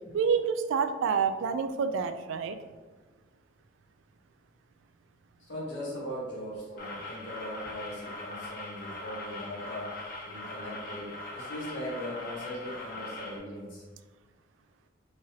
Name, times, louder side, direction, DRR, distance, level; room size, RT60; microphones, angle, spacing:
voice 1, 0.1-2.6, right 6 dB, 85° right, 9 dB, 0.3 m, -28 dB
voice 2, 5.5-13.8, equal, 75° left, -6 dB, 1.5 m, -39 dB
sound 1, 6.8-13.4, left 2 dB, 50° left, 0.8 m, -41 dB
4.0 x 3.0 x 2.7 m, 1.4 s
head